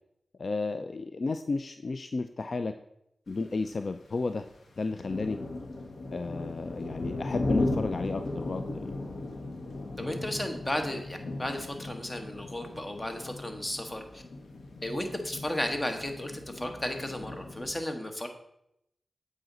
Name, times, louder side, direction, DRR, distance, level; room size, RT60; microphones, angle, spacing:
voice 1, 0.4-2.7 3.3-4.4 4.8-5.4 6.1-8.8, left 3 dB, 60° left, 9 dB, 0.3 m, -33 dB
sound 1, 3.3-3.5 4.2-4.4 4.7-17.7, left 2 dB, 90° left, 1.0 m, -37 dB
voice 2, 10.0-14.2 14.8-18.3, left 1 dB, 25° left, 5 dB, 1.1 m, -34 dB
7.7 x 4.9 x 3.9 m, 0.79 s
cardioid pair, 55°, 0 cm